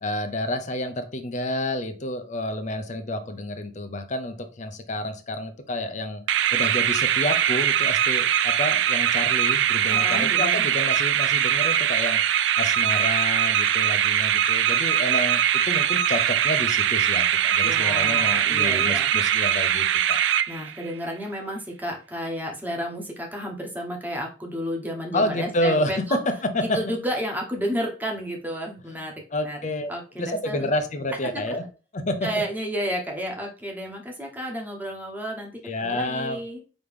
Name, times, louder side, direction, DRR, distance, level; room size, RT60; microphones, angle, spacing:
voice 1, 0.0-12.2 12.6-15.4 15.7-20.2 25.1-25.9 26.5-26.8 29.3-29.9 30.2-31.7 31.9-32.3 35.6-36.4, left 1 dB, 40° left, 8 dB, 0.7 m, -29 dB
sound 1, 6.3-20.9, right 10 dB, 80° right, 0.3 m, -22 dB
voice 2, 9.9-10.7 17.6-19.1 20.5-26.2 26.7-29.1 29.4-29.6 29.9-30.7 31.3-31.4 32.2-35.5 35.8-36.6, equal, 10° right, 0 dB, 1.1 m, -31 dB
5.2 x 3.0 x 3.4 m, 0.35 s
head